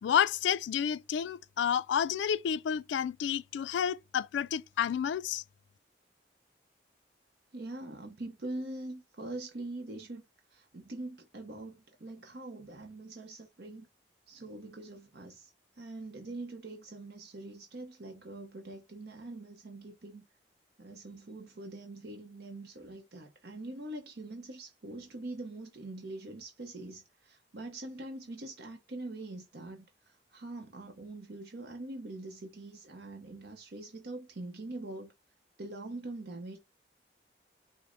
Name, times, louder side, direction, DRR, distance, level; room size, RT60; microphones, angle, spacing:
voice 1, 0.0-5.4, left 8 dB, 90° left, 0.3 m, -30 dB
voice 2, 7.5-10.2 10.5-13.9 14.3-15.5 15.8-20.2 20.8-35.1 35.6-36.6, right 2 dB, 65° right, 0.7 m, -43 dB
5.0 x 2.1 x 3.7 m
head